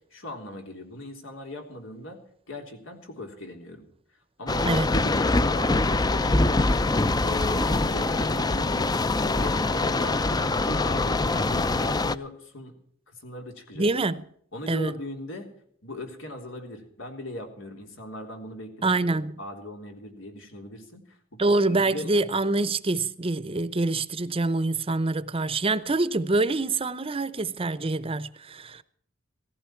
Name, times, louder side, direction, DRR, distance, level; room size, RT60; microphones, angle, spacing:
voice 1, 0.1-2.2 2.5-3.9 4.4-6.8 7.2-9.0 9.3-12.7 13.1-13.9 14.5-15.5 15.8-18.9 19.4-21.2 21.7-22.1, left 1 dB, 85° left, 3.6 m, -39 dB
sound 1, 4.5-12.2, left 2 dB, 20° left, 0.5 m, -24 dB
voice 2, 13.8-14.2 14.7-14.9 18.8-19.4 21.4-28.8, right 2 dB, 30° right, 0.7 m, -25 dB
18.0 x 15.0 x 4.5 m
head